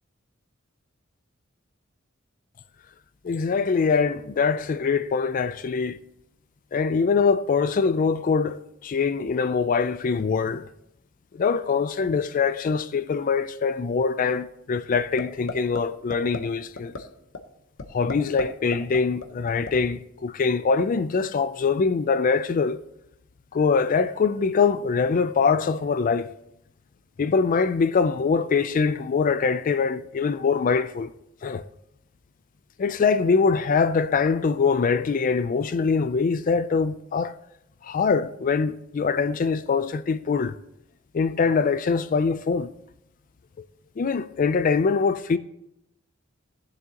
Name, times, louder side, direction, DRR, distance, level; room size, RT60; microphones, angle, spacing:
voice 1, 3.2-6.0 6.7-10.6 11.3-16.9 17.9-22.8 23.5-26.3 27.2-31.1 31.4-31.6 32.8-37.3 37.8-40.5 41.1-42.7 44.0-45.4, left 5 dB, 40° left, 0.4 m, -23 dB
sound 1, 14.9-15.2 15.5-15.8 16.1-16.4 16.8-17.0 17.3-17.4 17.8-18.4 18.7-19.7, left 3 dB, 65° left, 0.9 m, -31 dB
18.5 x 7.2 x 2.9 m
head